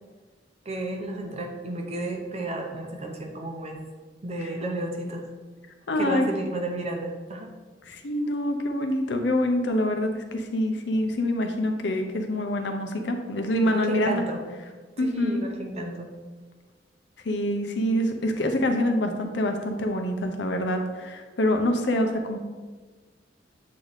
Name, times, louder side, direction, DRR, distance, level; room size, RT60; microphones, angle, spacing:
voice 1, 0.6-3.8 4.2-5.3 6.0-7.5 13.7-14.4 15.0-16.1, right 1 dB, 35° right, 2 dB, 0.7 m, -32 dB
voice 2, 5.9-6.3 7.9-14.2 15.0-15.4 17.2-22.4, left 1 dB, 70° left, 5 dB, 0.7 m, -26 dB
7.7 x 3.1 x 4.0 m, 1.4 s
head